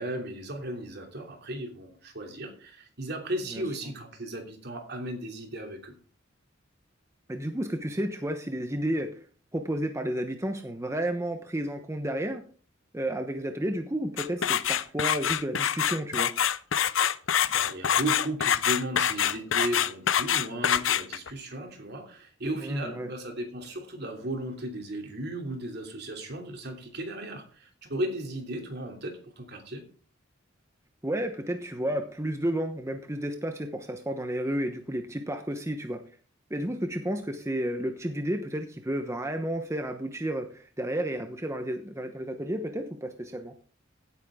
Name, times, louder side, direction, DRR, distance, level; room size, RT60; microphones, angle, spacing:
voice 1, 0.0-5.9 17.5-29.8, right 1 dB, 60° right, 3 dB, 3.0 m, -35 dB
voice 2, 7.3-9.2 9.5-12.4 12.9-16.3 22.6-23.1 31.0-36.0 36.5-43.5, right 1 dB, 15° right, 5 dB, 1.0 m, -32 dB
sound 1, 14.2-21.3, left 9 dB, 80° left, 0.6 m, -25 dB
16.5 x 9.0 x 3.7 m, 0.40 s
head